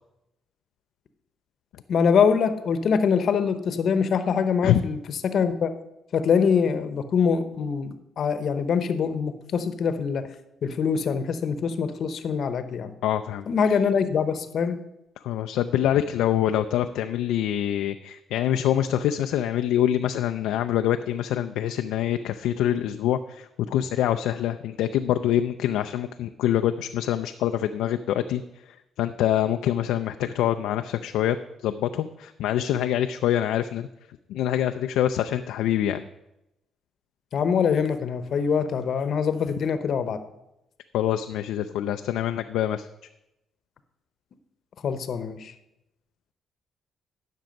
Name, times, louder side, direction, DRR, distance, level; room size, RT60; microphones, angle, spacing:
voice 1, 1.9-5.7 6.1-10.3 10.6-12.9 13.5-14.8 37.3-40.2 44.8-45.5, left 6 dB, 60° left, 11 dB, 0.8 m, -24 dB
voice 2, 13.0-13.5 15.2-28.4 29.0-31.4 31.6-33.9 34.3-36.0 40.9-42.9, left 11 dB, 90° left, 8 dB, 0.3 m, -25 dB
10.5 x 6.1 x 5.2 m, 0.90 s
cardioid pair, 90°, 0 cm